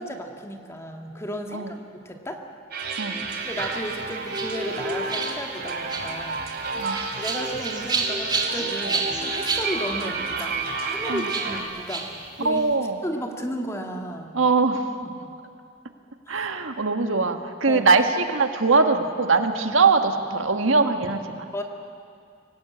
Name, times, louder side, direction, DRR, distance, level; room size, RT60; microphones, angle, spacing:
voice 1, 0.0-1.7 2.1-2.4 3.4-6.5 7.2-12.1 12.4-12.6 13.0-14.4 15.0-15.1 16.3-16.5 17.7-17.8 21.5-21.6, equal, 15° left, 3 dB, 1.8 m, -34 dB
sound 1, 2.7-11.6, right 3 dB, 55° right, 2.8 m, -31 dB
sound 2, 3.3-12.7, right 4 dB, 20° right, 2.4 m, -32 dB
voice 2, 12.4-13.0 14.3-14.9 16.3-21.5, right 4 dB, 85° right, 6 dB, 1.5 m, -22 dB
25.5 x 18.5 x 8.6 m, 2.4 s
head